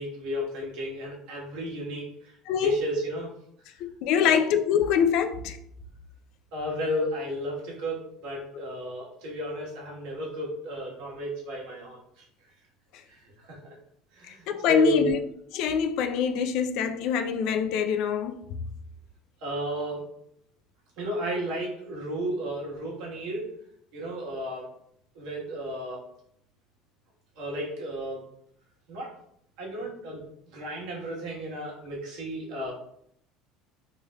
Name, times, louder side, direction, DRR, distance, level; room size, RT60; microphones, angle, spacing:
voice 1, 0.0-3.3 4.1-4.4 6.5-12.2 13.1-13.8 14.1-15.1 19.4-20.1 21.0-23.5 23.9-24.7 25.1-26.0 27.4-28.2 28.9-29.1 29.6-32.7, right 1 dB, 75° right, 1.3 m, -33 dB
voice 2, 3.8-5.6 14.3-15.2 15.5-18.4, left 7 dB, 65° left, 0.3 m, -24 dB
3.2 x 3.2 x 2.3 m
cardioid pair, 135°, 0 cm